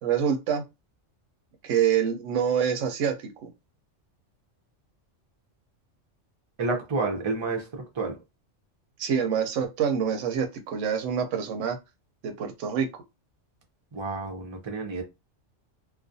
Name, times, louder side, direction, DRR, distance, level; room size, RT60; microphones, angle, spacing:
voice 1, 0.0-0.6 1.6-3.2 3.4-3.5 9.0-11.8 12.2-12.9, right 8 dB, 80° right, 0.9 m, -26 dB
voice 2, 6.6-8.2 13.9-15.0, right 3 dB, 40° right, 0.4 m, -30 dB
2.4 x 2.1 x 2.6 m
omnidirectional pair, 1.3 m